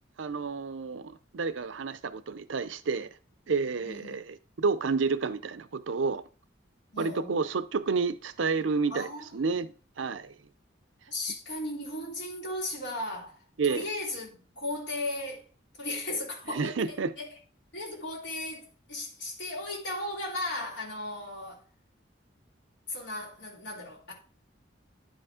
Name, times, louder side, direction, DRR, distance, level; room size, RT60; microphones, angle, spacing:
voice 1, 0.2-3.1 3.5-6.2 7.0-10.3 13.6-13.8 16.5-17.1, right 4 dB, 80° right, 0.6 m, -30 dB
voice 2, 3.8-4.2 6.9-7.5 8.9-9.3 11.1-13.4 13.7-15.4 15.8-16.8 17.2-17.3 17.7-21.6 22.9-24.1, left 1 dB, 65° left, 3.1 m, -36 dB
10.5 x 5.2 x 3.6 m
head